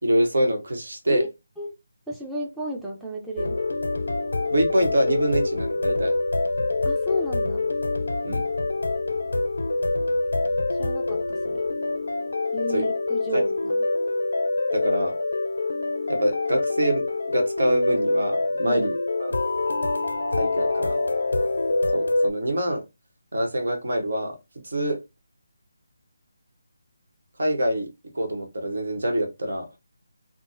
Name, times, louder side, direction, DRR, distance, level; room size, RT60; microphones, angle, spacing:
voice 1, 0.0-1.2 4.5-6.2 8.2-8.4 12.7-12.8 14.7-15.2 16.1-18.9 19.2-19.4 20.4-21.0 21.9-22.8 23.3-24.4 24.6-25.0 27.4-27.9 28.1-29.7, right 1 dB, 75° right, 1.1 m, -25 dB
voice 2, 2.1-3.6 6.8-7.7 10.7-11.7 12.5-13.8 18.6-18.9, equal, 5° right, 0.5 m, -32 dB
sound 1, 3.4-22.3, left 2 dB, 80° left, 0.5 m, -25 dB
3.8 x 2.0 x 2.5 m
figure-of-eight pair, 160°, 0 cm